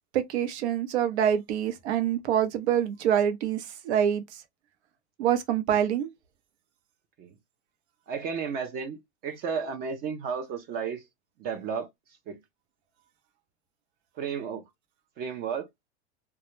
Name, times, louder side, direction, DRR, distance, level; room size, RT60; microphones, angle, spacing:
voice 1, 0.1-4.2 5.2-6.1, right 9 dB, 80° right, 0.7 m, -26 dB
voice 2, 8.1-11.0 11.4-11.9 12.3-12.4 14.2-14.6 15.2-15.7, right 6 dB, 30° right, 0.4 m, -33 dB
2.2 x 2.1 x 3.0 m
supercardioid pair, 130°, 33 cm